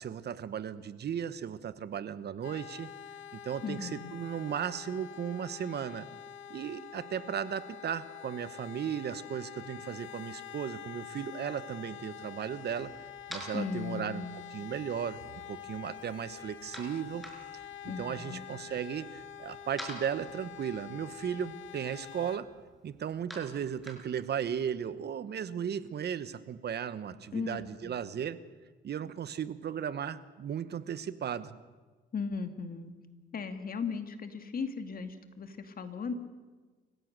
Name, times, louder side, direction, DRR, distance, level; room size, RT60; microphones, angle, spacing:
voice 1, 0.0-2.9 3.3-6.1 6.5-12.9 13.3-14.2 14.5-17.2 17.8-22.5 22.8-28.4 28.8-31.5, right 8 dB, 55° right, 14 dB, 1.2 m, -36 dB
sound 1, 2.4-22.4, left 10 dB, 75° left, 1.8 m, -46 dB
voice 2, 3.6-4.1 13.5-14.5 17.9-18.5 27.3-28.1 32.1-32.9 33.3-36.1, left 5 dB, 45° left, 8 dB, 2.3 m, -37 dB
sound 2, 12.6-24.6, equal, ahead, 5.7 m, -51 dB
29.0 x 16.0 x 6.7 m, 1.4 s
cardioid pair, 90°, 20 cm